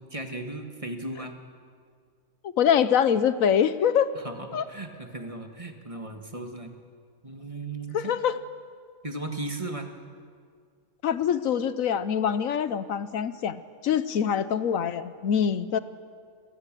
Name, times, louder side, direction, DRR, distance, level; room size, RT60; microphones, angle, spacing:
voice 1, 0.0-1.4 4.2-6.7 7.2-8.1 9.0-9.9, right 2 dB, 25° right, 5 dB, 1.7 m, -36 dB
voice 2, 2.4-4.1 4.5-4.6 7.9-8.4 11.0-15.8, left 8 dB, 75° left, 14 dB, 1.2 m, -24 dB
27.5 x 19.0 x 7.6 m, 2.1 s
omnidirectional pair, 1.4 m